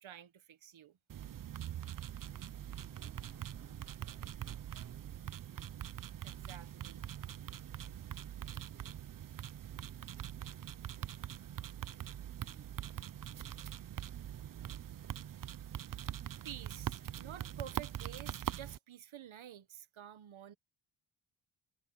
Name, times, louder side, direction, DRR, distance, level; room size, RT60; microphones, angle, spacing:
voice 1, 0.0-1.0 6.2-7.1 15.9-16.2 16.4-20.5, right 10 dB, 70° right, 1.1 m, -50 dB
sound 1, 1.1-18.8, right 10 dB, 45° right, 0.4 m, -43 dB
voice 2, 2.2-6.0 8.5-9.1 9.6-11.2, right 2 dB, 15° right, 2.9 m, -69 dB
Fixed-wing aircraft airplane, 2.5-8.0, left 2 dB, 10° left, 1.2 m, -72 dB
wide cardioid pair, 175°, 49 cm